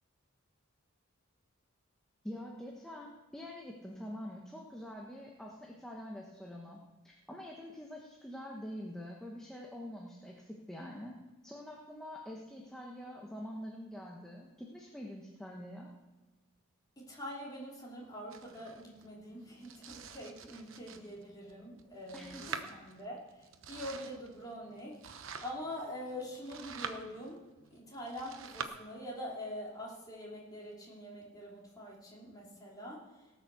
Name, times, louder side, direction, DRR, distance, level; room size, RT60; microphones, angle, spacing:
voice 1, 2.2-15.9 22.1-22.7, equal, 5° left, -2 dB, 1.1 m, -46 dB
voice 2, 17.0-27.4 27.7-33.3, equal, 20° left, -4 dB, 3.1 m, -45 dB
Domestic sounds home sounds, 18.3-28.7, right 6 dB, 65° right, 0.9 m, -47 dB
18.0 x 6.4 x 6.9 m, 1.2 s
head